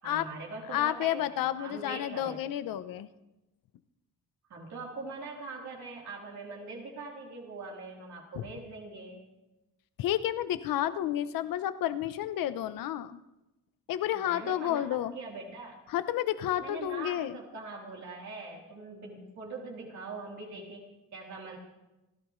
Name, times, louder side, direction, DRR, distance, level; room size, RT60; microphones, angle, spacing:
voice 1, 0.0-2.4 4.5-9.2 14.1-15.8 16.6-21.6, right 3 dB, 55° right, -3 dB, 3.6 m, -42 dB
voice 2, 0.7-3.1 8.3-8.5 10.0-13.2 13.9-15.2 15.9-17.4, left 12 dB, 85° left, 12 dB, 0.9 m, -31 dB
29.0 x 15.0 x 3.2 m, 0.98 s
cardioid pair, 135°, 33 cm